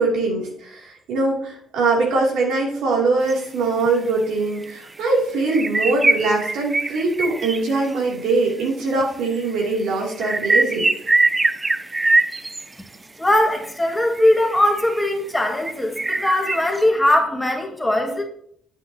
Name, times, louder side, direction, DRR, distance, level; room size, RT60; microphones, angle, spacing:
voice 1, 0.0-10.9, right 3 dB, 85° right, -2 dB, 2.7 m, -22 dB
sound 1, 3.3-3.4 3.8-3.9 4.6-4.7 5.0-5.1 5.4-8.1 9.0-9.1 9.3-12.9 13.7-15.1 15.6-16.9, right 2 dB, 20° right, 0.5 m, -23 dB
voice 2, 13.2-18.2, left 1 dB, 10° left, 1 dB, 1.8 m, -20 dB
8.8 x 8.3 x 2.8 m, 0.64 s
cardioid pair, 90°, 0 cm